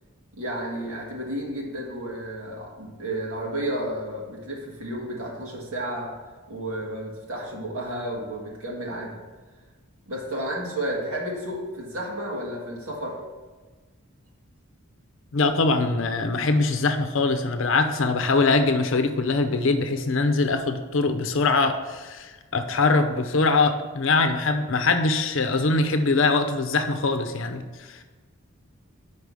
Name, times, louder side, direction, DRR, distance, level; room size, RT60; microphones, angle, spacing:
voice 1, 0.4-6.1 6.5-9.2 10.1-13.2, right 1 dB, 85° right, -2 dB, 1.9 m, -32 dB
voice 2, 15.3-27.6 27.9-28.0, left 3 dB, 60° left, 7 dB, 0.6 m, -22 dB
5.4 x 5.3 x 6.3 m, 1.3 s
head